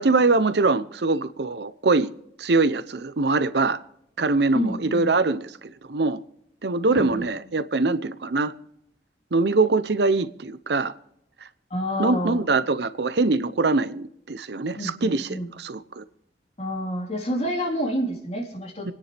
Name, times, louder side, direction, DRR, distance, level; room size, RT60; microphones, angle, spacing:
voice 1, 0.0-2.1 2.4-3.8 4.2-5.5 5.9-6.2 6.6-8.5 9.3-10.9 12.0-15.3 15.6-16.0 18.9-19.0, right 3 dB, 70° right, 0.7 m, -23 dB
voice 2, 4.5-5.1 6.9-7.2 11.7-12.4 14.8-15.5 16.6-18.9, equal, 35° left, 4.0 m, -28 dB
28.0 x 9.9 x 3.4 m
head